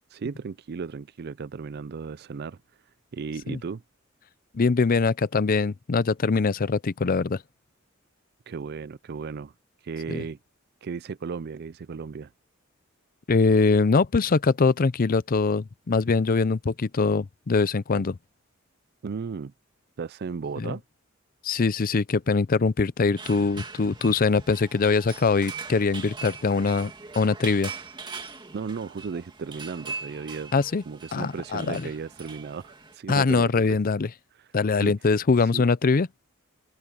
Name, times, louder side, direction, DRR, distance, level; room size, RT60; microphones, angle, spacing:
voice 1, 0.1-2.6 3.1-3.8 8.5-9.5 9.8-10.4 10.8-12.3 19.0-19.5 20.0-20.8 28.5-30.5 30.9-33.8 34.4-34.5 34.7-34.9 35.5-35.7, right 5 dB, 50° right, 0.4 m, -35 dB
voice 2, 4.5-7.4 10.1-10.2 13.3-18.2 20.6-20.7 21.4-27.7 30.5-30.8 31.1-31.9 33.1-34.1 34.5-36.1, left 4 dB, 45° left, 0.5 m, -23 dB
sound 1, 23.2-32.9, right 4 dB, 25° right, 2.3 m, -41 dB
open air
head